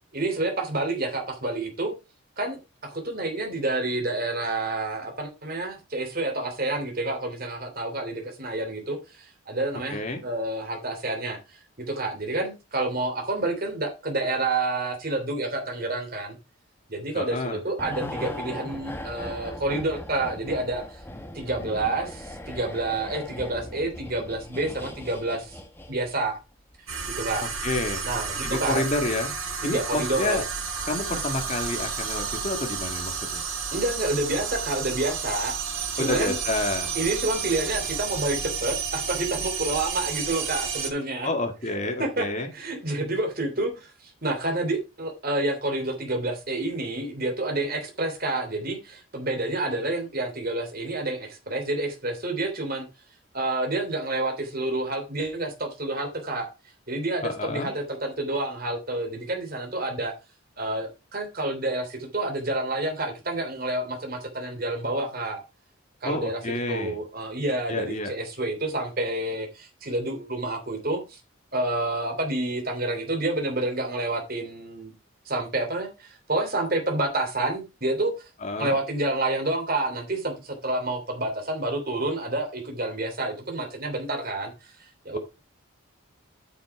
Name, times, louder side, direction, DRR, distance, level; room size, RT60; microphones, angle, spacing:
voice 1, 0.1-1.9 2.4-16.4 16.9-21.0 21.3-25.6 25.9-26.4 27.2-27.5 28.0-28.9 29.6-30.4 33.7-35.6 35.9-36.4 36.9-41.3 42.0-42.3 42.5-52.8 53.3-56.5 56.9-60.1 60.6-65.4 66.0-66.4 66.7-71.2 71.5-74.9 75.2-78.3 78.6-84.7 85.0-85.2, right 2 dB, 45° right, 3.0 m, -29 dB
voice 2, 9.9-10.2 17.1-17.6 27.4-28.0 28.4-29.3 29.6-30.4 30.9-33.4 36.0-36.9 41.2-42.5 57.2-57.7 66.0-67.0 67.7-68.1 78.4-78.8, left 2 dB, 35° left, 2.0 m, -29 dB
sound 1, 17.8-26.3 26.6-26.8, left 1 dB, 10° left, 1.2 m, -39 dB
sound 2, 26.9-40.9, right 6 dB, 85° right, 3.9 m, -31 dB
9.0 x 6.1 x 4.8 m
head